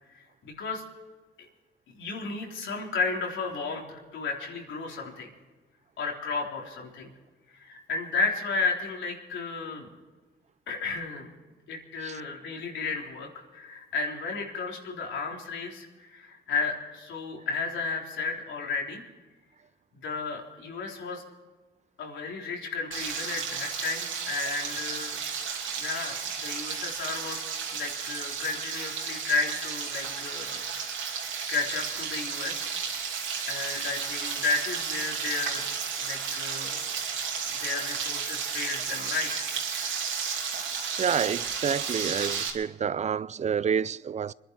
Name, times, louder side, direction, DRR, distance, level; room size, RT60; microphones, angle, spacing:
voice 1, 0.1-0.8 1.9-5.3 6.0-7.1 7.5-9.9 10.7-11.3 11.7-19.0 20.0-21.2 22.0-25.2 25.8-27.4 27.7-30.6 31.5-32.7 33.2-35.7 36.0-36.9 37.5-39.5, left 4 dB, 70° left, 3.7 m, -33 dB
Frying (food), 22.9-42.5, right 6 dB, 75° right, 2.8 m, -33 dB
voice 2, 41.0-44.3, right 7 dB, 35° right, 0.4 m, -29 dB
25.0 x 11.0 x 4.8 m
cardioid pair, 90°, 20 cm